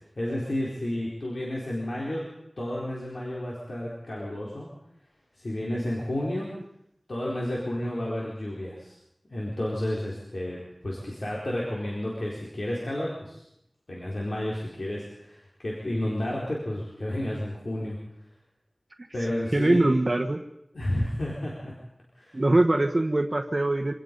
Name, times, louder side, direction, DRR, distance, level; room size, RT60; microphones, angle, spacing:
voice 1, 0.2-2.2 2.6-4.7 5.4-6.5 7.1-8.9 9.3-13.4 13.9-18.0 19.1-19.9 20.7-21.7 22.2-22.4, left 1 dB, 75° left, -4 dB, 4.5 m, -31 dB
voice 2, 19.5-20.4 22.3-23.9, right 2 dB, 50° right, 6 dB, 1.2 m, -22 dB
26.0 x 18.0 x 5.5 m, 0.80 s
wide cardioid pair, 55°, 0 cm